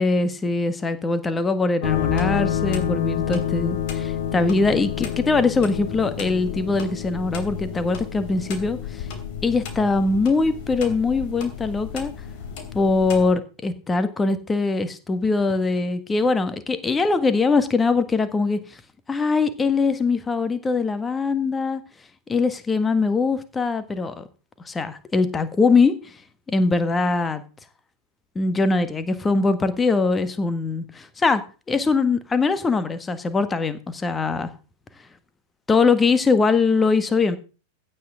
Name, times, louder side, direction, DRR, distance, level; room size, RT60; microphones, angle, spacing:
voice 1, 0.0-9.1 9.4-12.1 12.7-18.8 19.1-21.8 22.3-24.2 24.6-26.1 26.5-27.4 28.3-34.5 35.7-37.4, left 4 dB, 15° left, 11 dB, 1.6 m, -22 dB
sound 1, 1.8-13.3, left 9 dB, 45° left, 2.9 m, -29 dB
16.0 x 10.5 x 3.7 m, 0.33 s
figure-of-eight pair, 90°, 0 cm